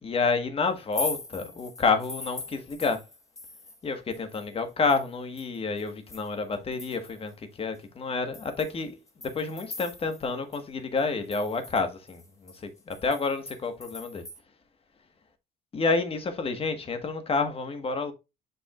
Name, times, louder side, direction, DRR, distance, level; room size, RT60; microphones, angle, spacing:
voice 1, 0.0-3.0 3.8-9.0 9.3-14.2 15.7-18.1, left 4 dB, 35° left, 1.4 m, -29 dB
sound 1, 0.8-3.8 4.1-7.3 7.7-7.8 8.3-10.3 10.5-10.6 11.0-14.4, left 3 dB, 20° left, 1.2 m, -41 dB
7.2 x 5.4 x 2.4 m
cardioid pair, 110°, 17 cm